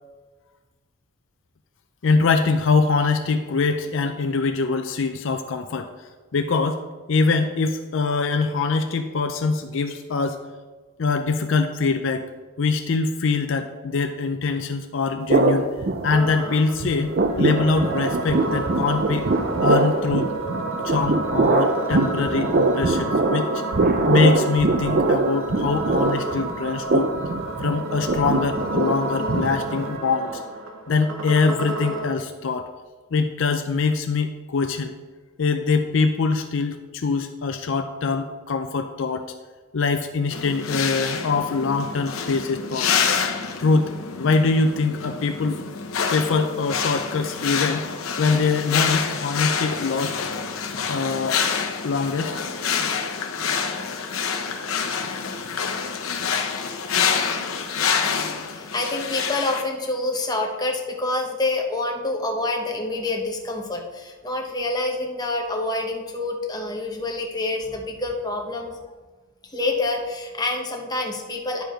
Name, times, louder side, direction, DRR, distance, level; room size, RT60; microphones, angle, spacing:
voice 1, 2.0-5.9 6.3-6.8 7.1-10.4 11.0-12.3 12.6-15.7 16.0-19.3 19.6-20.3 20.8-23.6 24.1-27.1 27.6-30.4 30.9-32.7 33.1-34.9 35.4-39.3 39.7-42.9 43.6-43.9 44.2-45.6 46.1-47.9 48.2-50.2 50.9-51.4 51.8-52.3, left 4 dB, 60° left, 7 dB, 0.5 m, -23 dB
sound 1, 15.3-16.5 16.8-30.0, right 3 dB, 45° right, 0.5 m, -23 dB
sound 2, 16.1-32.1, right 2 dB, 65° right, 1.3 m, -30 dB
sound 3, 40.3-59.6, left 6 dB, 75° left, 0.8 m, -27 dB
voice 2, 58.5-68.8 69.4-71.6, left 2 dB, 20° left, 1 dB, 0.9 m, -27 dB
10.5 x 4.9 x 5.0 m, 1.4 s
head